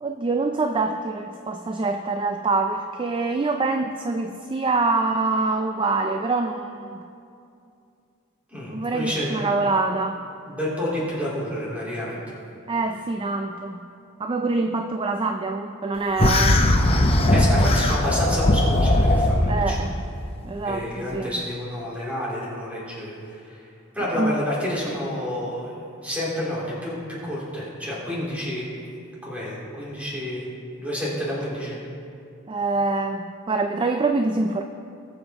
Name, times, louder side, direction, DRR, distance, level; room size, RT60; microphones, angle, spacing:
voice 1, 0.0-7.0 8.7-10.2 12.7-13.8 14.2-16.6 19.5-20.0 20.4-21.3 24.1-24.4 32.5-34.6, right 3 dB, 25° right, 6 dB, 0.3 m, -25 dB
voice 2, 8.5-9.5 10.5-12.2 17.3-19.8 20.6-23.2 23.5-23.6 23.9-25.7 26.0-28.6 29.2-30.5 30.8-31.8, left 1 dB, 5° right, -7 dB, 3.0 m, -29 dB
sound 1, 16.2-19.6, left 1 dB, 25° left, 0.8 m, -19 dB
20.0 x 7.2 x 3.5 m, 2.5 s
head